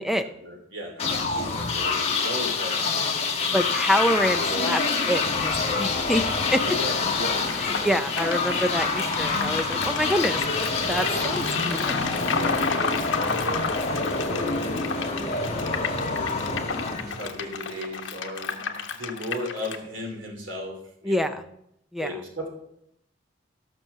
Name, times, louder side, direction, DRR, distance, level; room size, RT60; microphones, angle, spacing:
voice 1, 0.0-2.8 3.3-4.0 4.4-4.8 6.6-7.9 12.1-15.5 16.1-21.4 22.0-22.5, equal, 70° right, 2 dB, 3.0 m, -37 dB
sound 1, 1.0-17.7, left 4 dB, 30° left, 1.8 m, -27 dB
voice 2, 3.5-4.8 5.1-6.2 6.5-6.6 7.8-12.0 21.0-21.4 21.9-22.1, equal, ahead, 9 dB, 0.6 m, -26 dB
sound 2, 7.5-19.8, left 5 dB, 70° left, 1.3 m, -32 dB
15.0 x 6.2 x 6.8 m, 0.76 s
head